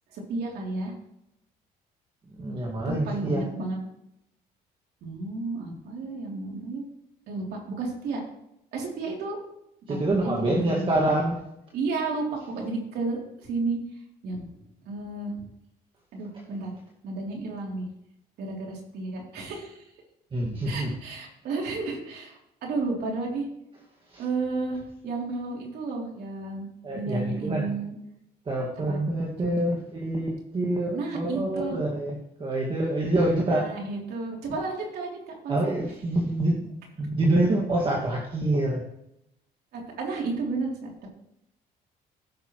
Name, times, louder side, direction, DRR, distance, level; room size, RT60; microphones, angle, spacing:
voice 1, 0.1-0.9 2.8-3.8 5.0-6.8 7.3-8.2 8.7-9.4 9.9-10.9 11.7-13.8 14.2-14.5 14.8-15.4 16.1-16.7 17.0-17.9 18.4-19.8 20.6-23.5 24.2-26.7 26.9-27.9 28.9-29.0 29.4-29.8 30.9-31.8 33.4-35.7 39.7-41.1, right 3 dB, 70° right, -1 dB, 3.1 m, -32 dB
voice 2, 2.4-3.4 9.9-11.4 20.3-20.9 24.1-24.2 26.8-27.7 28.5-33.7 35.5-36.7 37.0-38.8, right 1 dB, 30° right, -2 dB, 1.9 m, -26 dB
15.5 x 6.7 x 3.1 m, 0.81 s
cardioid pair, 110°, 17 cm